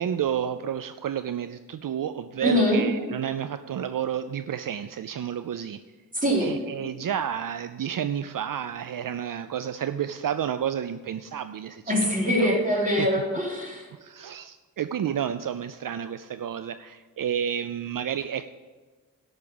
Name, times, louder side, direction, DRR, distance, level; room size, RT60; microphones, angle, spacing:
voice 1, 0.0-5.8 6.4-11.9 12.4-12.6 13.0-13.1 14.0-18.5, right 9 dB, 70° right, 11 dB, 0.5 m, -30 dB
voice 2, 2.4-2.8 6.1-6.6 11.9-13.9, equal, 25° right, -3 dB, 3.8 m, -23 dB
12.5 x 6.2 x 7.0 m, 1.4 s
wide cardioid pair, 80°, 34 cm